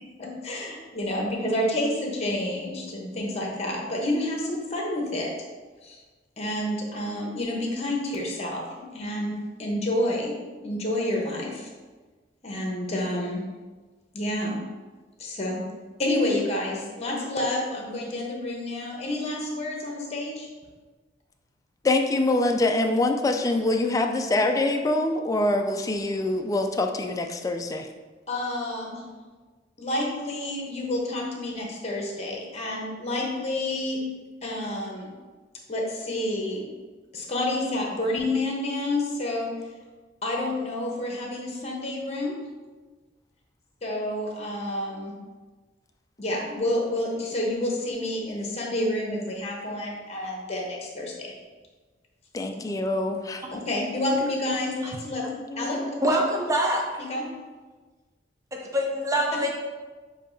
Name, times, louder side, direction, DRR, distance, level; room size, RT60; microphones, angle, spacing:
voice 1, 0.0-5.3 5.8-6.0 6.4-8.7 8.9-9.3 9.6-10.3 10.6-11.7 12.4-13.4 14.1-14.6 15.2-15.6 16.0-20.5 28.3-29.0 29.8-34.0 34.4-35.1 35.7-36.7 37.1-39.5 40.2-42.4 43.8-45.1 46.2-51.3 53.5-55.3 55.6-55.8 57.0-57.2 59.3-59.5, left 1 dB, 35° left, -1 dB, 0.9 m, -29 dB
voice 2, 21.8-27.9 52.3-53.4 55.5-56.0, left 2 dB, 20° left, 4 dB, 0.3 m, -25 dB
voice 3, 56.0-56.8 58.5-59.5, equal, 20° right, -1 dB, 0.7 m, -24 dB
6.7 x 2.7 x 2.6 m, 1.3 s
head